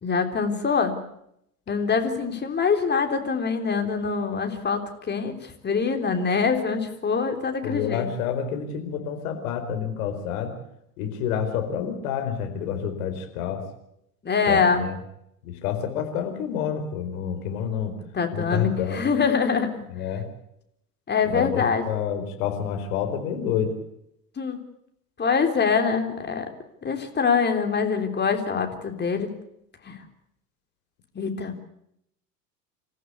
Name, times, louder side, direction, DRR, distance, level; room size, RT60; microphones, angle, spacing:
voice 1, 0.0-1.0 1.7-8.1 14.2-14.9 18.1-19.7 21.1-21.8 24.4-24.6 25.2-26.5 26.8-29.3 29.8-30.0 31.1-31.6, left 5 dB, 20° left, 5 dB, 3.6 m, -24 dB
voice 2, 7.6-10.5 11.0-13.6 14.5-15.0 15.4-17.9 18.3-19.1 19.9-20.3 21.2-23.7, left 8 dB, 60° left, 6 dB, 4.6 m, -28 dB
28.0 x 14.5 x 8.4 m, 0.78 s
figure-of-eight pair, 80°, 48 cm